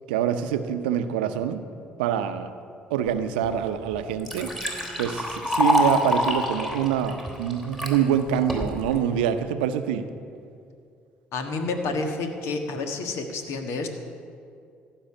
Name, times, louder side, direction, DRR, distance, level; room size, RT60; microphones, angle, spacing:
voice 1, 0.1-1.6 2.0-2.5 2.9-4.5 5.0-10.1, right 9 dB, 80° right, 10 dB, 0.7 m, -25 dB
Liquid, 3.4-3.5 3.9-7.9 8.5-9.0, left 1 dB, 10° left, 3.2 m, -26 dB
voice 2, 11.3-13.9, left 3 dB, 65° left, 6 dB, 1.5 m, -29 dB
15.0 x 5.6 x 9.9 m, 2.4 s
hypercardioid pair, 55°, 5 cm